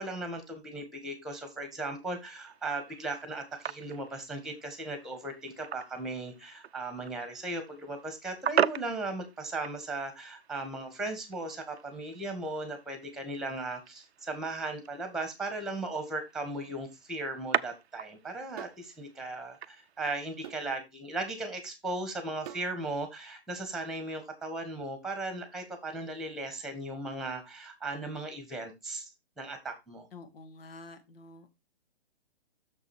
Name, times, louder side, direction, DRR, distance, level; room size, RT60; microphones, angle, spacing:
voice 1, 0.0-29.1 29.4-30.1, right 2 dB, ahead, 8 dB, 1.9 m, -37 dB
sound 1, 2.0-20.7, right 9 dB, 80° right, 0.6 m, -39 dB
sound 2, 18.6-18.9 20.4-20.7 22.5-22.7, right 10 dB, 40° right, 0.8 m, -43 dB
voice 2, 30.1-31.6, left 3 dB, 60° left, 9 dB, 2.4 m, -49 dB
6.8 x 6.7 x 4.5 m, 0.23 s
hypercardioid pair, 145°, 32 cm